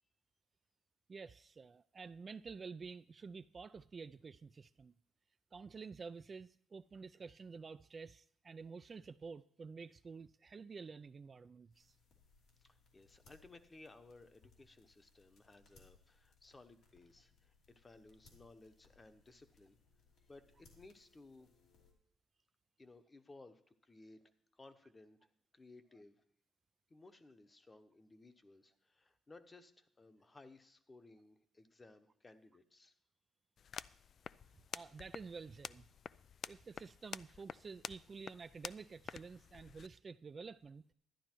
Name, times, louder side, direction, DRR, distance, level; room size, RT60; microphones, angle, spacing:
voice 1, 1.1-4.9 5.5-11.9 34.7-35.9 36.5-40.8, right 5 dB, 35° right, 0.3 m, -50 dB
sound 1, 11.7-21.9, left 4 dB, 75° left, 2.7 m, -69 dB
voice 2, 12.6-19.8 20.2-21.5 22.8-24.2 24.5-26.2 26.9-32.9, left 2 dB, 25° left, 1.0 m, -60 dB
sound 2, 33.6-39.9, left 7 dB, 55° left, 0.3 m, -50 dB
11.5 x 10.5 x 4.5 m
cardioid pair, 90°, 0 cm